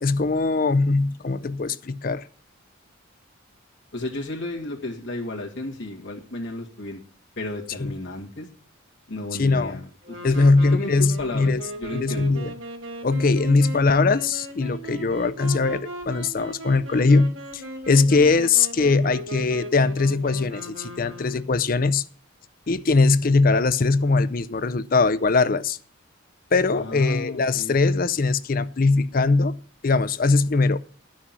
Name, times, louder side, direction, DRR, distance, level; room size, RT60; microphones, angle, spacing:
voice 1, 0.0-2.2 9.4-9.8 10.2-11.6 11.9-12.5 13.0-22.0 22.7-25.8 26.5-29.5 29.8-30.8, left 3 dB, 45° left, 0.5 m, -21 dB
voice 2, 3.9-7.0 7.4-8.5 9.1-12.3 26.7-27.8, left 2 dB, 60° left, 2.1 m, -33 dB
Wind instrument woodwind instrument, 10.0-21.8, right 1 dB, 85° right, 2.4 m, -38 dB
11.0 x 6.3 x 7.4 m
head